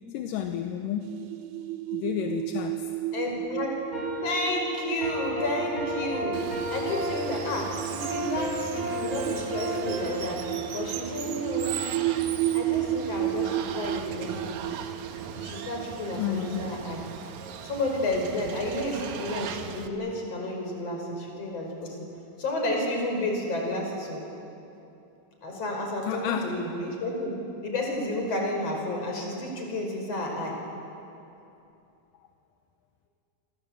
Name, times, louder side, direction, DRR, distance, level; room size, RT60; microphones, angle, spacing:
voice 1, 0.1-1.2 1.9-2.9 16.2-16.6 26.1-26.6, left 9 dB, 75° left, 5 dB, 2.5 m, -31 dB
sound 1, 1.0-17.3, right 13 dB, 85° right, 3.0 m, -33 dB
voice 2, 3.1-3.8 4.2-6.4 6.7-11.8 12.1-12.3 12.5-14.6 15.3-17.0 17.6-22.1 22.4-24.2 25.4-27.3 27.6-30.6, left 1 dB, 45° left, 1 dB, 6.1 m, -31 dB
sound 2, 3.9-11.2, equal, 20° right, 6.4 m, -34 dB
Water, 6.3-19.9, right 7 dB, 65° right, 2.2 m, -39 dB
28.5 x 25.0 x 8.1 m, 2.8 s
omnidirectional pair, 4.2 m